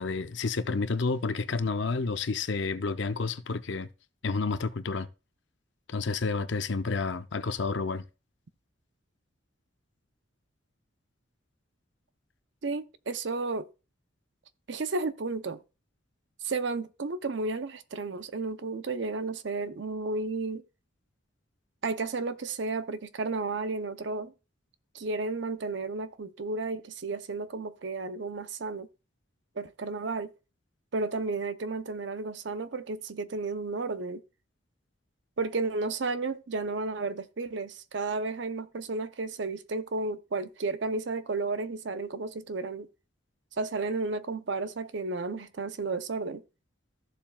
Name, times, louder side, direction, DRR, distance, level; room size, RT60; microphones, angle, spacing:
voice 1, 0.0-3.9 4.2-5.1 5.9-8.0, left 4 dB, 60° left, 0.6 m, -30 dB
voice 2, 12.6-13.7 14.7-15.6 16.4-20.6 21.8-24.3 24.9-28.9 29.6-30.3 30.9-34.2 35.4-42.9 43.6-46.4, right 3 dB, 60° right, 0.6 m, -32 dB
14.0 x 7.3 x 2.3 m
head